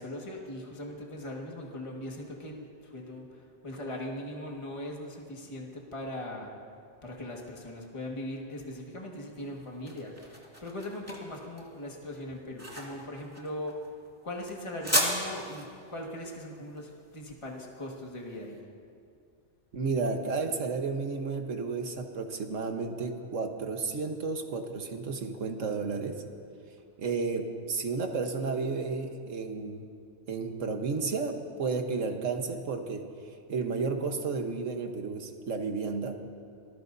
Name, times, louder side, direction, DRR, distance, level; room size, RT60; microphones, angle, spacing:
voice 1, 0.0-6.5 7.0-13.8 14.2-18.6, left 1 dB, 25° left, -2 dB, 1.8 m, -40 dB
sound 1, 9.3-18.4, equal, 10° right, 2.3 m, -36 dB
voice 2, 19.7-26.2 27.0-29.9 30.3-33.1 33.5-36.2, right 4 dB, 85° right, 4 dB, 1.6 m, -32 dB
26.0 x 19.5 x 2.7 m, 2.4 s
omnidirectional pair, 1.3 m